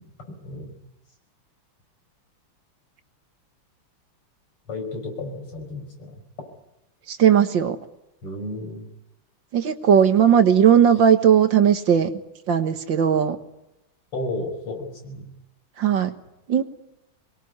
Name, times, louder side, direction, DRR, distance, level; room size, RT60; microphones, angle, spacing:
voice 1, 0.3-0.8 4.7-6.2 8.2-8.9 14.1-15.3, left 2 dB, 80° left, 3 dB, 6.7 m, -33 dB
voice 2, 7.1-7.8 9.5-12.1 12.5-13.4 15.8-16.1 16.5-16.6, right 8 dB, 60° right, 9 dB, 2.0 m, -17 dB
24.5 x 21.5 x 9.6 m, 0.90 s
omnidirectional pair, 2.4 m